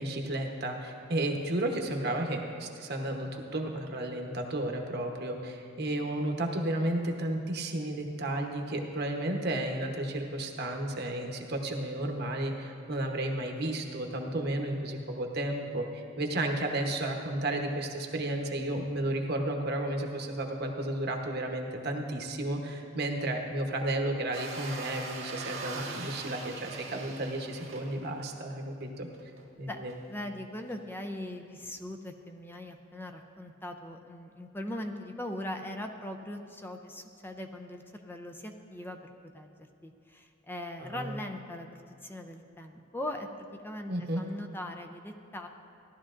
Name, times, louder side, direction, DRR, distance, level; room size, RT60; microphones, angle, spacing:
voice 1, 0.0-29.1 29.6-29.9 40.8-41.1 43.9-44.2, right 1 dB, 55° right, 3 dB, 1.0 m, -33 dB
sound 1, 24.3-28.3 28.8-28.9 29.1-29.5 29.9-30.0 30.7-30.8, right 3 dB, 90° right, 1.6 m, -41 dB
voice 2, 30.1-45.5, left 1 dB, 10° left, 5 dB, 0.5 m, -40 dB
16.0 x 11.5 x 2.5 m, 2.5 s
head